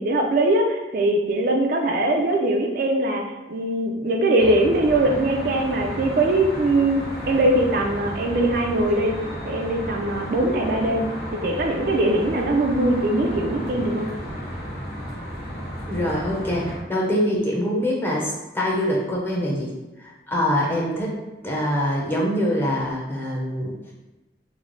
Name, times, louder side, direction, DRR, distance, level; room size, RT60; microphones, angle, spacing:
voice 1, 0.0-9.1 9.5-14.1, right 1 dB, 55° right, 2 dB, 0.4 m, -21 dB
Traffic noise roadway noise, 4.4-16.8, equal, 65° left, 1.3 m, -33 dB
voice 2, 15.9-19.7 20.0-21.2 21.4-23.9, equal, 15° left, -4 dB, 0.6 m, -24 dB
3.1 x 2.0 x 3.8 m, 1.1 s
head